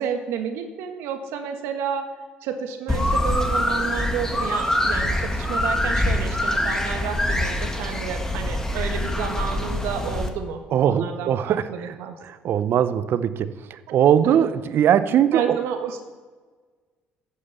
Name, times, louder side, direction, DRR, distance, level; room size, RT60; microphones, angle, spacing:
voice 1, 0.0-2.1 2.4-12.2 13.9-14.0 14.2-14.4 15.3-16.0, right 7 dB, 75° right, 6 dB, 1.5 m, -30 dB
sound 1, 2.9-10.3, left 1 dB, 10° left, 1.7 m, -24 dB
voice 2, 10.7-11.9 12.2-15.6, right 9 dB, 60° right, 13 dB, 0.7 m, -21 dB
11.0 x 6.6 x 6.9 m, 1.4 s
hypercardioid pair, 65°, 4 cm